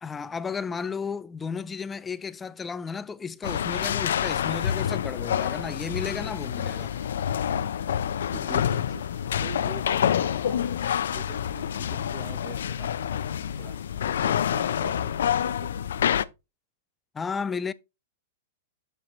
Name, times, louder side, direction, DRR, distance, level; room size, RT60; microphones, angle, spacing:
voice 1, 0.0-6.9 17.1-17.7, left 5 dB, 10° left, 0.3 m, -33 dB
sound 1, 3.4-16.2, left 9 dB, 80° left, 0.4 m, -27 dB
sound 2, 5.3-15.3, right 5 dB, 55° right, 1.8 m, -58 dB
voice 2, 8.3-13.8 14.2-15.7, right 7 dB, 35° right, 0.9 m, -44 dB
7.3 x 6.7 x 3.0 m
hypercardioid pair, 155°, 0 cm